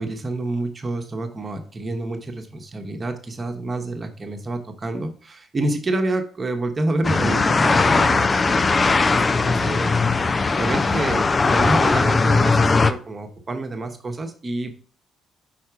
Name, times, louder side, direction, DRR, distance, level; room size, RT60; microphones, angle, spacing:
voice 1, 0.0-10.0 10.6-14.7, right 2 dB, 30° right, 4 dB, 1.1 m, -28 dB
sound 1, 7.0-12.9, left 3 dB, 30° left, 0.5 m, -19 dB
5.7 x 4.2 x 4.5 m, 0.42 s
figure-of-eight pair, 45°, 0 cm